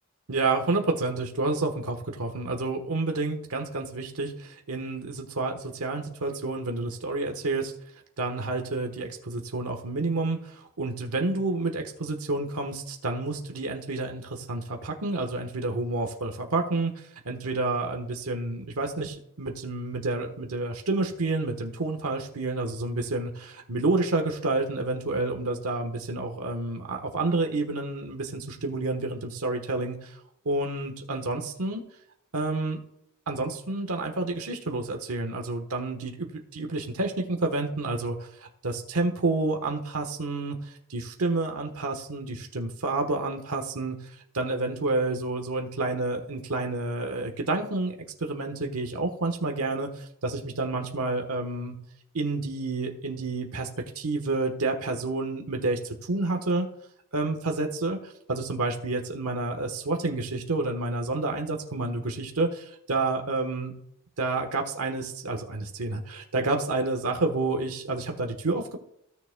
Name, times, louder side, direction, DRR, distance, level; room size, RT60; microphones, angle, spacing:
voice 1, 0.3-7.7 8.2-16.9 17.2-30.1 30.4-31.8 32.3-32.8 33.3-40.6 40.9-43.9 44.3-51.7 52.1-53.7 53.9-56.7 57.1-63.7 64.2-68.8, right 2 dB, 90° right, 3 dB, 1.2 m, -29 dB
16.0 x 7.0 x 2.2 m, 0.73 s
head